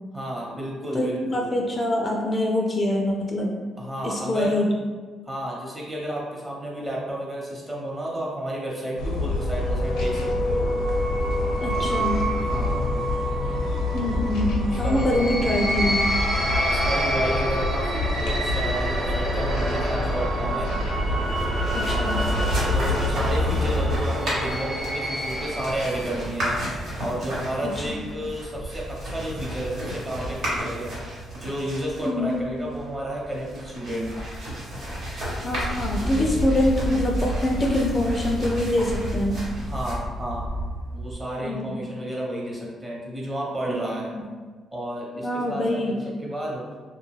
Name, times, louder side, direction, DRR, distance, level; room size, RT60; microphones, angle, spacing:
voice 1, 0.1-1.5 3.8-4.6 5.3-10.7 12.5-12.9 14.7-15.3 16.4-20.7 21.9-26.5 27.0-30.9 31.3-34.1 36.0-36.4 39.6-40.5 40.9-44.1 44.7-46.6, right 1 dB, 20° right, -4 dB, 0.8 m, -31 dB
voice 2, 0.9-3.5 4.0-4.7 11.6-12.2 13.9-16.1 21.7-22.2 27.6-28.0 32.1-32.4 35.4-39.4 41.4-41.8 43.7-43.9 44.1-44.2 45.2-45.9, left 1 dB, 30° left, 0 dB, 0.3 m, -25 dB
sound 1, 9.0-24.0, left 2 dB, 90° left, 0.5 m, -27 dB
sound 2, 9.3-26.1, equal, 45° right, 0.5 m, -28 dB
sound 3, 21.2-41.1, right 1 dB, 80° right, 1.3 m, -32 dB
2.5 x 2.2 x 3.2 m, 1.5 s
cardioid pair, 90°, 0 cm